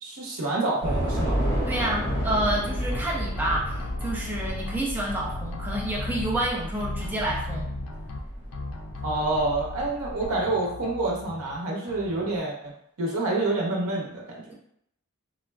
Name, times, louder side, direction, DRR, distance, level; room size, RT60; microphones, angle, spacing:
voice 1, 0.0-1.4 9.0-12.6 13.0-14.5, right 2 dB, 75° right, -2 dB, 0.8 m, -27 dB
Train / Subway metro underground, 0.8-10.2, equal, 45° left, 1.5 m, -31 dB
sound 1, 1.7-3.0 3.4-4.8 5.1-6.5 6.8-8.2 8.5-9.9 10.2-11.6 11.9-12.4, left 3 dB, 85° left, 0.4 m, -38 dB
voice 2, 1.7-7.7, right 1 dB, 10° right, -4 dB, 0.5 m, -29 dB
3.6 x 2.1 x 2.2 m, 0.71 s
head